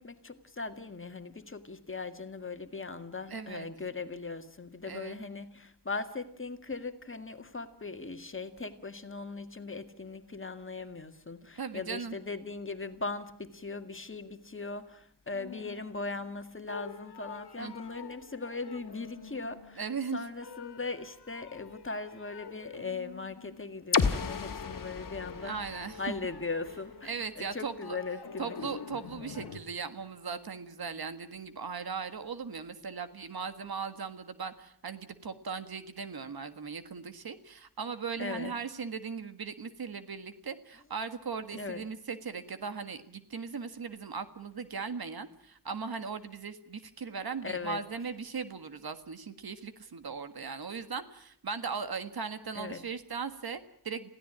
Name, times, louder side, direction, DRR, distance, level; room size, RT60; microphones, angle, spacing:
voice 1, 0.0-19.8 20.1-28.6 38.2-38.5 41.5-41.9 47.4-47.8 52.5-52.9, left 3 dB, 30° left, 2.0 m, -39 dB
voice 2, 3.3-3.7 4.9-5.2 11.6-12.2 17.6-17.7 19.8-20.2 25.4-26.0 27.0-28.0 28.4-54.1, right 5 dB, 70° right, 1.7 m, -38 dB
sound 1, 15.3-16.4 16.7-20.0 20.4-23.9 24.1-29.6, left 6 dB, 80° left, 1.5 m, -47 dB
sound 2, 23.9-27.8, left 5 dB, 55° left, 1.7 m, -33 dB
27.0 x 16.5 x 8.8 m
wide cardioid pair, 75°, 39 cm